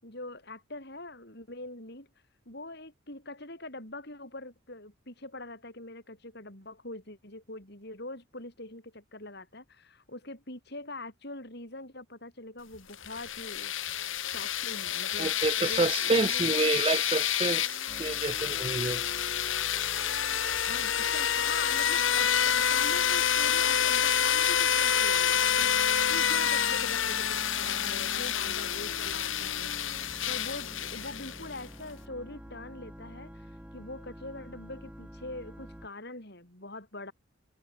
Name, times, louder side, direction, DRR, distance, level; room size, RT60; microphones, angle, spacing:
voice 1, 0.0-2.1 2.4-13.7 14.0-16.4 20.6-37.1, left 2 dB, 50° left, 6.7 m, -43 dB
sound 1, 12.9-31.6, left 9 dB, 65° left, 2.2 m, -28 dB
voice 2, 15.2-19.0, right 3 dB, 25° right, 0.4 m, -29 dB
sound 2, 17.9-35.9, equal, 5° right, 3.7 m, -47 dB
head